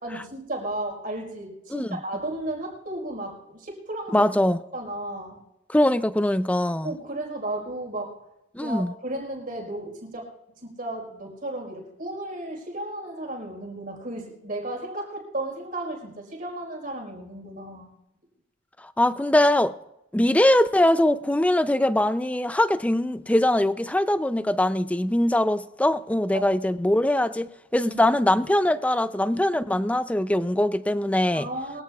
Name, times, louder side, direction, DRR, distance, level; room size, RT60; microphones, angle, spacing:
voice 1, 0.0-4.3 4.7-5.4 6.8-8.2 8.6-17.9 26.3-26.5 27.9-28.0 31.3-31.8, right 1 dB, 45° right, 4.5 m, -34 dB
voice 2, 4.1-4.6 5.7-6.9 8.5-8.9 19.0-19.7 20.1-31.5, left 1 dB, 5° left, 0.4 m, -22 dB
23.0 x 16.5 x 2.4 m
head